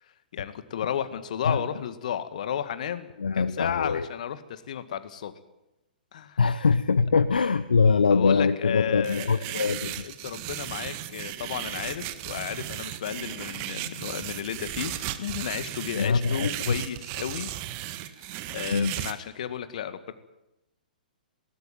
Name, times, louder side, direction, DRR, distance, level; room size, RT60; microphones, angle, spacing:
voice 1, 0.0-3.1 3.3-5.3 6.1-6.4 8.1-9.4 9.7-17.5 18.2-20.1, left 9 dB, 55° left, 12 dB, 1.9 m, -33 dB
voice 2, 3.2-4.1 6.4-10.0 16.0-16.5 18.7-18.9, left 5 dB, 70° left, 15 dB, 0.8 m, -23 dB
sound 1, 9.0-19.1, right 14 dB, 35° right, 1.7 m, -36 dB
19.5 x 18.5 x 9.2 m, 0.92 s
figure-of-eight pair, 110°, 5 cm